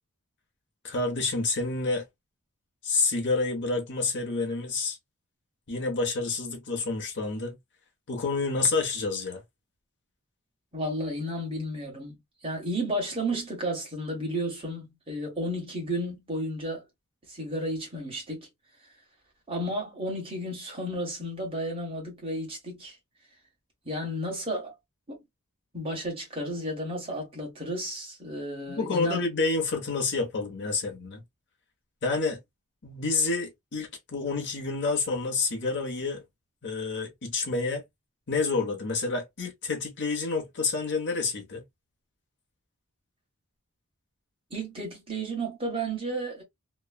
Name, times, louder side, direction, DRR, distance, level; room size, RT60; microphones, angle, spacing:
voice 1, 0.8-2.0 2.8-5.0 5.7-7.6 8.1-9.4 28.8-31.2 32.0-32.4 32.8-36.2 36.6-37.8 38.3-41.6, left 3 dB, 55° left, 0.9 m, -28 dB
voice 2, 10.7-12.2 12.4-16.8 17.3-18.5 19.5-23.0 23.8-24.7 25.1-25.2 25.7-29.2 44.5-46.4, right 1 dB, 25° right, 1.4 m, -32 dB
3.0 x 2.2 x 2.2 m
head